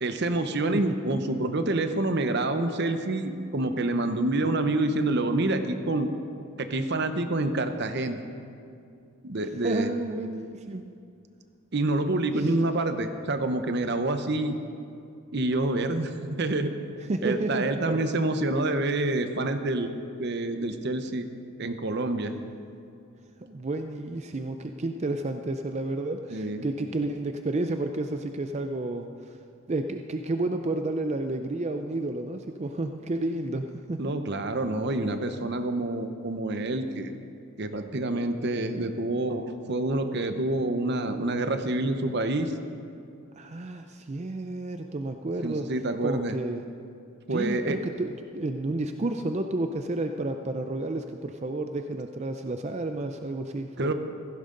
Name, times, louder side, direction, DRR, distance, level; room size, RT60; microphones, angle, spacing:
voice 1, 0.0-6.1 6.6-8.2 9.2-9.9 11.7-14.5 15.3-16.1 16.4-16.7 17.2-19.9 20.2-21.3 21.6-22.3 26.3-26.7 34.0-37.1 37.6-42.5 45.4-46.3 47.3-47.8 53.8-53.9, right 2 dB, 50° right, 8 dB, 0.8 m, -27 dB
voice 2, 9.4-10.9 12.4-12.5 17.1-18.0 23.4-29.4 29.7-34.1 37.7-37.8 43.4-45.7 46.0-46.7 47.3-53.9, right 2 dB, 30° right, 6 dB, 0.4 m, -31 dB
16.0 x 15.5 x 3.9 m, 2.4 s
head